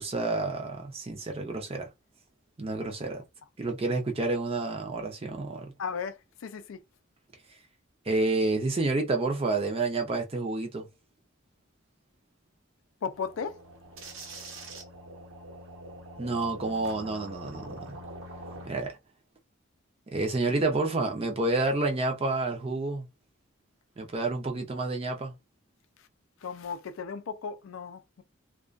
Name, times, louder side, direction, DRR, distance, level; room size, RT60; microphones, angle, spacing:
voice 1, 0.0-1.9 2.6-3.2 3.6-5.7 8.1-10.9 16.2-18.0 18.6-19.0 20.1-23.1 24.0-25.3, right 2 dB, 30° right, 0.5 m, -29 dB
voice 2, 5.8-6.8 13.0-13.6 26.4-28.2, left 6 dB, 75° left, 0.4 m, -36 dB
sound 1, 13.1-18.7, right 1 dB, 75° right, 0.9 m, -44 dB
2.3 x 2.2 x 2.4 m
head